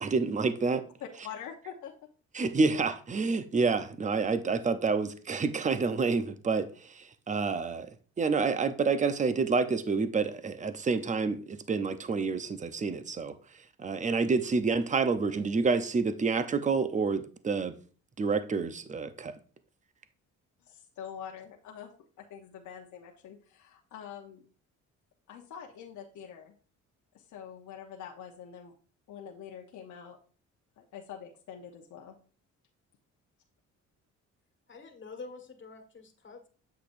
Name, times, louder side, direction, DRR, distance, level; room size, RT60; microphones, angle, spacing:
voice 1, 0.0-0.8 2.3-7.9 8.2-13.3 13.8-17.7 18.2-19.3, right 4 dB, 25° right, 0.7 m, -28 dB
voice 2, 1.0-1.9 20.6-21.9 22.2-24.4 25.3-26.5 27.1-28.7 29.1-30.2 30.8-32.2, left 8 dB, 75° left, 0.9 m, -45 dB
voice 3, 34.7-36.5, left 4 dB, 40° left, 1.6 m, -46 dB
7.9 x 6.8 x 2.6 m
cardioid pair, 90°, 30 cm